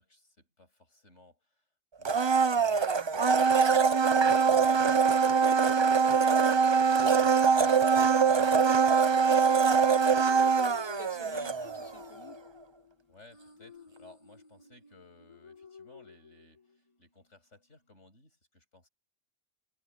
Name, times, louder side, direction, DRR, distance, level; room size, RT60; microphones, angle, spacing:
voice 1, 0.0-1.6 2.0-5.8 6.0-10.0 10.6-10.9 11.5-11.7 13.1-18.9, left 2 dB, 65° left, 8.0 m, -58 dB
Domestic sounds home sounds, 2.0-12.0 12.3-12.4, right 5 dB, 40° right, 0.4 m, -23 dB
sound 1, 9.9-16.8, left 4 dB, 25° left, 2.1 m, -50 dB
voice 2, 10.8-12.4, left 4 dB, 45° left, 4.3 m, -52 dB
open air
omnidirectional pair, 1.3 m